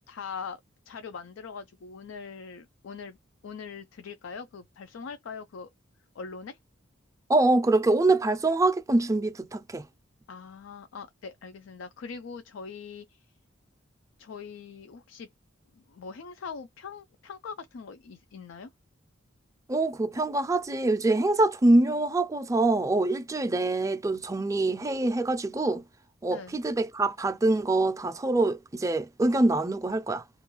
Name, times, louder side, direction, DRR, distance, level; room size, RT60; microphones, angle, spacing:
voice 1, 0.1-0.6 0.9-3.2 3.4-5.7 6.2-6.6 10.3-13.3 14.2-15.3 15.7-18.7 26.3-26.6, left 5 dB, 75° left, 0.4 m, -42 dB
voice 2, 7.3-9.8 19.7-25.8 26.2-30.2, right 2 dB, 15° right, 0.4 m, -24 dB
2.4 x 2.2 x 3.0 m
head